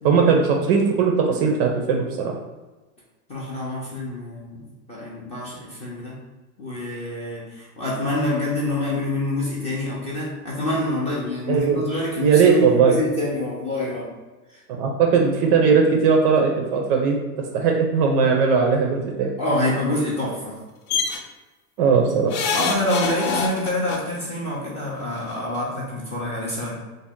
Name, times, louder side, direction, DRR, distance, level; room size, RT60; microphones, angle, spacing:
voice 1, 0.0-2.3 11.5-11.8 12.2-13.0 14.7-17.2 17.5-19.3 21.8-22.3, right 5 dB, 40° right, 1 dB, 0.4 m, -18 dB
voice 2, 3.3-6.2 6.6-14.1 14.5-14.6 19.4-20.6 22.5-26.7, left 1 dB, 15° left, -5 dB, 0.4 m, -26 dB
sound 1, 20.9-21.2 22.3-24.0 25.2-25.3 25.6-25.7, left 5 dB, 65° left, 0.6 m, -25 dB
2.7 x 2.1 x 3.5 m, 1.2 s
hypercardioid pair, 120°, 46 cm